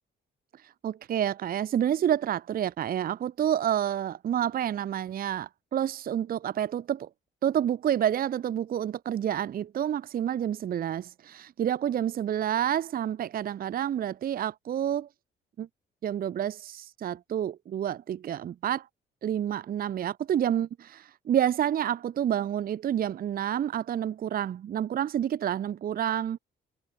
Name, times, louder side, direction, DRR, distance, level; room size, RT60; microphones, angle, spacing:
voice 1, 0.6-7.1 7.4-15.1 15.6-15.7 16.0-18.9 19.2-26.4, right 10 dB, 45° right, 0.6 m, -29 dB
cardioid pair, 90°, 20 cm